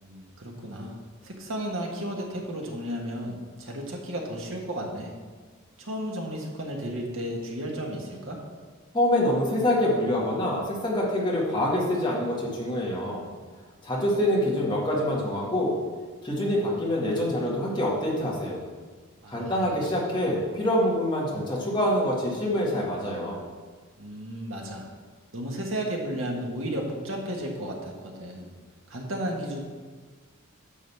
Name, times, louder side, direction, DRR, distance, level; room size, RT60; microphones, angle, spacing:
voice 1, 0.0-5.1 5.8-8.4 19.2-19.7 24.0-24.9 25.3-28.5 28.9-29.6, equal, 70° right, 0 dB, 1.6 m, -33 dB
voice 2, 8.9-13.2 13.8-15.8 16.2-18.6 19.3-23.4, left 1 dB, 20° left, -5 dB, 1.8 m, -25 dB
10.0 x 4.0 x 7.1 m, 1.5 s
head